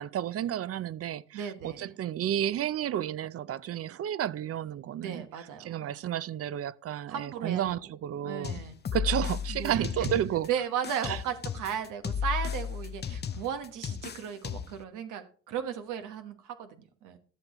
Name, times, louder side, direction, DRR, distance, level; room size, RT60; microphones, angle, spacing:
voice 1, 0.0-5.3 5.6-8.6 8.9-10.5 11.0-11.2, right 11 dB, 50° right, 0.5 m, -32 dB
voice 2, 1.3-1.9 5.0-5.9 7.1-7.9 8.2-8.7 9.5-10.2 10.5-17.2, right 8 dB, 90° right, 1.2 m, -36 dB
sound 1, 8.4-10.5 10.8-14.8, left 7 dB, 35° left, 0.7 m, -34 dB
14.0 x 6.6 x 3.0 m
cardioid pair, 90°, 30 cm